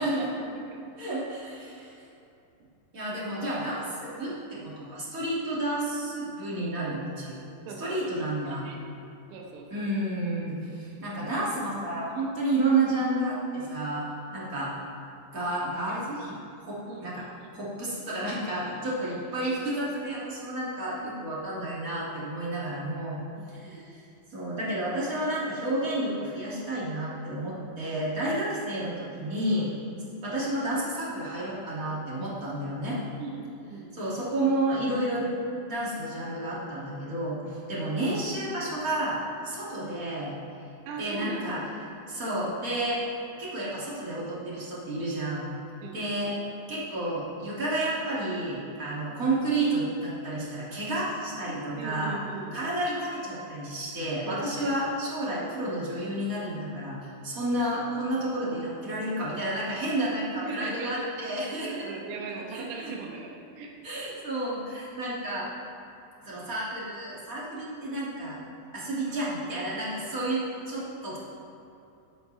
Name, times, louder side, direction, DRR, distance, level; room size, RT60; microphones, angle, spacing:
voice 1, 0.2-0.8 7.7-8.8 9.3-9.9 16.9-17.5 23.4-23.8 33.2-33.9 39.8-40.0 40.9-41.6 45.8-46.3 51.8-52.7 54.3-54.7 60.2-61.1 61.6-63.7, right 4 dB, 90° right, -1 dB, 3.8 m, -39 dB
voice 2, 1.0-1.9 2.9-7.4 7.8-8.6 9.7-14.0 14.3-14.7 15.3-16.3 16.7-17.2 17.5-23.2 23.5-24.0 24.3-29.7 30.2-33.0 33.9-35.3 35.7-40.3 41.0-41.6 42.1-43.0 43.4-45.5 45.9-46.3 46.7-52.1 52.5-57.0 57.2-61.8 62.5-62.9 63.8-65.5 66.2-68.4 68.7-71.2, right 1 dB, 30° right, -8 dB, 1.7 m, -31 dB
20.5 x 8.4 x 3.4 m, 2.7 s
omnidirectional pair, 5.4 m